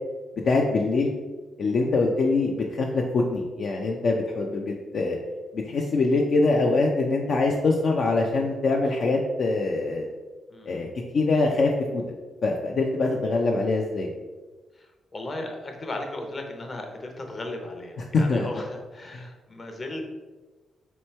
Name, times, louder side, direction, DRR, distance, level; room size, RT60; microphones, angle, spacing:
voice 1, 0.4-1.1 1.6-5.2 5.5-10.1 10.7-10.9 11.1-12.0 12.4-14.1 18.1-18.5 19.1-19.2, left 3 dB, 60° left, 0 dB, 0.4 m, -23 dB
voice 2, 10.5-10.9 14.7-20.1, left 2 dB, 40° left, 3 dB, 0.8 m, -36 dB
3.2 x 3.0 x 4.3 m, 1.3 s
cardioid pair, 75°, 0 cm